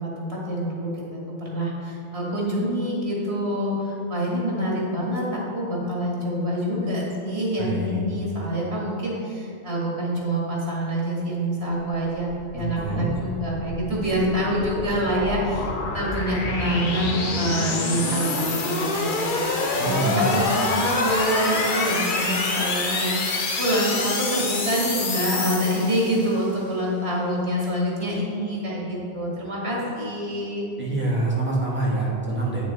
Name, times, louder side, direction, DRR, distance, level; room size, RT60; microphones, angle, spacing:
voice 1, 0.0-15.7 15.9-30.6, equal, 85° right, -4 dB, 2.2 m, -26 dB
voice 2, 7.6-8.0 12.5-13.1 19.8-20.5 30.8-32.7, right 2 dB, 10° right, -6 dB, 1.7 m, -26 dB
sound 1, 12.2-26.5, left 3 dB, 55° left, 1.0 m, -27 dB
8.9 x 6.1 x 4.1 m, 2.5 s
omnidirectional pair, 1.0 m